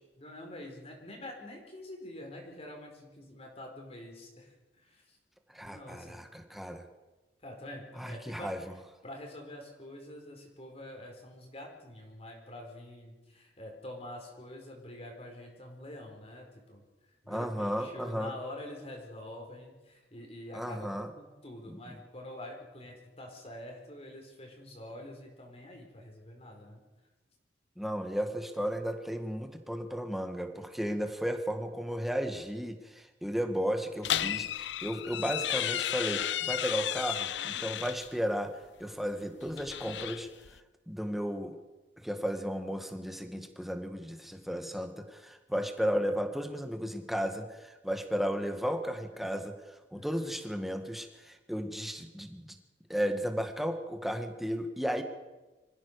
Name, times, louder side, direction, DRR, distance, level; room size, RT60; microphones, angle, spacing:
voice 1, 0.1-5.2 5.6-6.2 7.4-8.5 9.0-16.8 17.2-26.8 46.1-46.2 49.9-50.0, left 1 dB, 35° left, 1 dB, 4.5 m, -46 dB
voice 2, 5.5-6.8 8.0-8.6 17.3-18.3 20.5-21.1 21.7-22.0 27.8-38.5 38.8-40.3 40.9-41.6 42.0-49.6 49.9-52.6 52.9-55.0, equal, ahead, 6 dB, 1.9 m, -34 dB
sound 1, 34.0-38.1 39.4-40.6, left 11 dB, 75° left, 0.6 m, -33 dB
25.5 x 15.5 x 6.7 m, 1.2 s
head